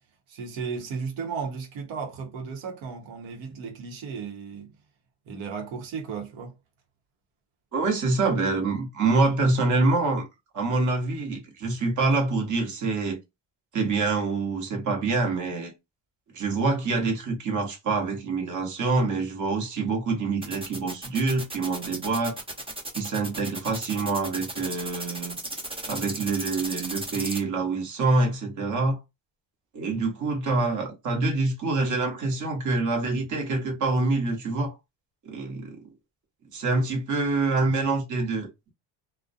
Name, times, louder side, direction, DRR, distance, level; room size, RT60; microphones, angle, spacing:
voice 1, 0.3-4.7 5.3-6.5 38.2-38.3, right 5 dB, 85° right, 0.9 m, -35 dB
voice 2, 7.7-10.3 10.5-13.2 13.7-15.7 16.3-22.4 22.9-25.4 25.9-29.0 29.7-34.8 35.2-35.8 36.5-38.5, right 3 dB, 40° right, 1.0 m, -26 dB
sound 1, 20.4-27.4, right 1 dB, 10° right, 0.7 m, -35 dB
2.3 x 2.1 x 2.5 m
cardioid pair, 95°, 46 cm